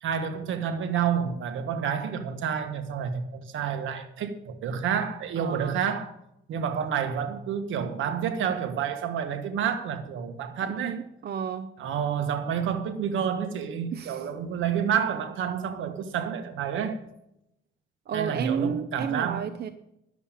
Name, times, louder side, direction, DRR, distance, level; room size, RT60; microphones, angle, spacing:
voice 1, 0.0-6.2 6.5-11.0 11.8-17.0 18.1-19.5, right 7 dB, 75° right, 1.4 m, -29 dB
voice 2, 5.4-5.8 10.8-11.7 13.9-14.3 18.1-19.7, right 7 dB, 55° right, 0.7 m, -31 dB
11.0 x 7.4 x 7.3 m
cardioid pair, 90°, 20 cm